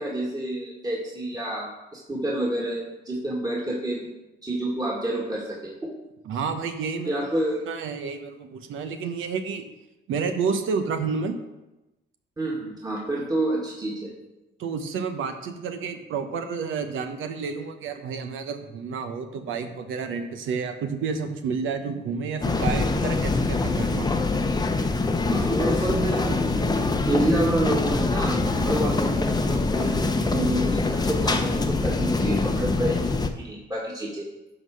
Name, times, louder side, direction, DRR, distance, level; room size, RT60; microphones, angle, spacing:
voice 1, 0.0-4.1 4.4-5.9 7.0-7.6 12.4-14.1 25.3-26.8 27.0-34.3, right 1 dB, 20° right, -4 dB, 1.9 m, -28 dB
voice 2, 6.3-7.1 7.7-9.7 10.1-11.4 14.6-24.3, right 5 dB, 80° right, 7 dB, 0.9 m, -30 dB
sound 1, 22.4-33.3, left 3 dB, 20° left, 0.8 m, -24 dB
11.0 x 4.0 x 6.3 m, 1.0 s
cardioid pair, 90°, 20 cm